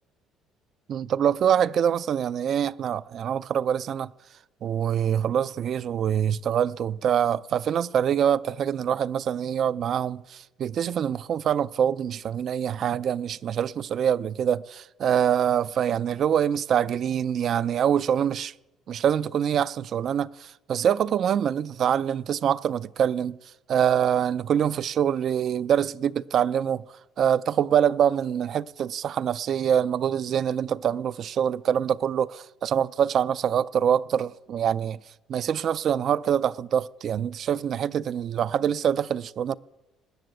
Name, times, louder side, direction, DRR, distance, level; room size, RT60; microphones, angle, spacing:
voice 1, 0.9-4.1 4.6-18.5 18.9-23.4 23.7-26.8 27.2-35.0 35.3-39.5, right 9 dB, 55° right, 0.4 m, -25 dB
19.5 x 6.7 x 7.8 m
cardioid pair, 95°, 0 cm